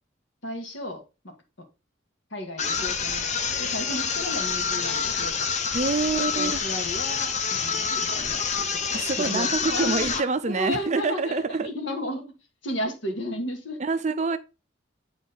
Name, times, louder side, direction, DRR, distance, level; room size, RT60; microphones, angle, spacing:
voice 1, 0.4-1.3 2.3-3.2 3.6-5.4 6.1-12.2 12.6-13.8, left 1 dB, 75° left, 2.0 m, -34 dB
sound 1, 2.6-10.3, left 6 dB, 35° left, 0.8 m, -27 dB
voice 2, 5.7-6.6 8.9-11.7 13.8-14.4, right 4 dB, 35° right, 0.5 m, -26 dB
9.1 x 3.9 x 3.9 m
head